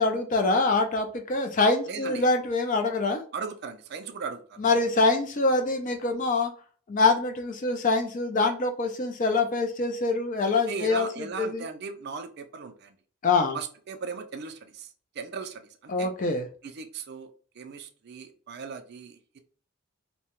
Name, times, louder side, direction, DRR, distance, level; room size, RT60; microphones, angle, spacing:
voice 1, 0.0-3.2 4.6-6.5 6.9-11.6 13.2-13.6 15.9-16.5, left 3 dB, 35° left, 5 dB, 0.4 m, -25 dB
voice 2, 1.9-2.2 3.3-4.6 10.7-12.9 13.5-16.1 16.6-17.3 17.6-19.4, right 5 dB, 50° right, 7 dB, 0.3 m, -38 dB
2.7 x 2.1 x 2.9 m, 0.43 s
head